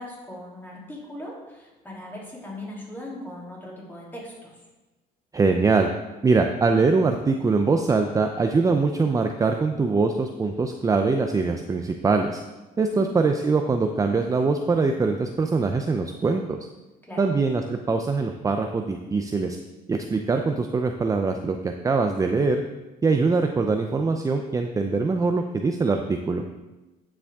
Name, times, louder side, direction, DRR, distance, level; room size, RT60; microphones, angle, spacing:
voice 1, 0.0-4.6 12.8-13.0 17.0-17.2, left 1 dB, 10° left, -5 dB, 3.1 m, -39 dB
voice 2, 5.3-5.9 6.2-12.4 12.8-16.6 17.2-19.6 19.9-22.6 23.0-26.4, right 4 dB, 20° right, 5 dB, 0.5 m, -23 dB
9.6 x 7.3 x 3.6 m, 1.1 s
cardioid pair, 110°, 17 cm